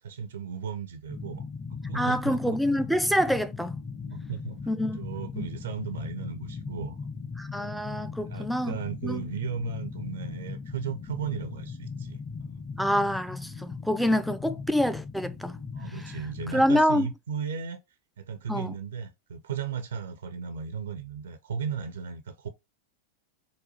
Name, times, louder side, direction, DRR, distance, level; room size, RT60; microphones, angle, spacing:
voice 1, 0.0-1.4 1.7-2.6 4.1-7.0 8.2-12.2 13.7-13.8 15.7-17.8 18.2-22.5, right 6 dB, 65° right, 0.4 m, -36 dB
sound 1, 1.1-16.7, left 5 dB, 25° left, 0.8 m, -38 dB
voice 2, 1.9-3.8 4.7-5.0 5.3-5.5 7.4-8.8 9.0-9.2 12.8-15.6 16.5-17.1 18.5-18.8, equal, ahead, 0.4 m, -26 dB
4.1 x 2.2 x 2.6 m
figure-of-eight pair, 90°, 0 cm